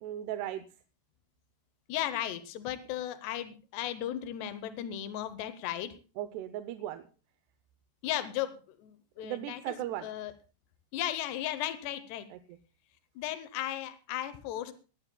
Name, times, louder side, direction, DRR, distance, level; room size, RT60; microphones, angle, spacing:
voice 1, 0.0-0.6 6.2-7.0 9.2-10.1 12.3-12.4, right 13 dB, 85° right, 10 dB, 2.8 m, -37 dB
voice 2, 1.9-5.9 8.0-10.3 10.9-12.3 13.2-14.7, left 12 dB, 90° left, 11 dB, 3.0 m, -36 dB
20.0 x 16.0 x 2.2 m, 0.35 s
omnidirectional pair, 4.7 m